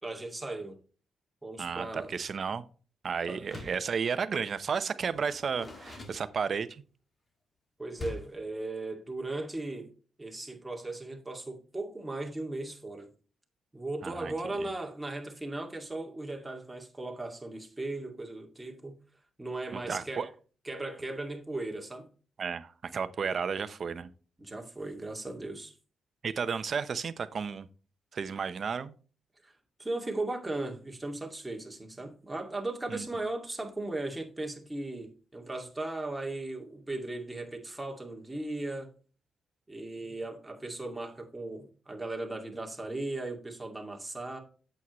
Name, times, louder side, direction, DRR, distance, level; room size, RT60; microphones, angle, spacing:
voice 1, 0.0-0.8 1.4-2.1 3.3-3.4 7.8-9.9 10.2-13.1 13.7-19.0 19.4-20.3 20.6-22.1 24.4-25.7 29.4-29.5 29.8-38.9 39.7-44.4, right 2 dB, 10° right, 2.3 m, -37 dB
voice 2, 1.6-2.6 3.0-6.8 14.0-14.3 14.6-14.7 19.7-20.3 22.4-24.1 26.2-27.7 28.1-28.9 32.9-33.0, right 6 dB, 50° right, 0.8 m, -33 dB
Door, 3.4-3.9 5.1-6.8 7.9-8.4, left 2 dB, 30° left, 2.2 m, -44 dB
8.4 x 7.9 x 3.1 m
cardioid pair, 100°, 0 cm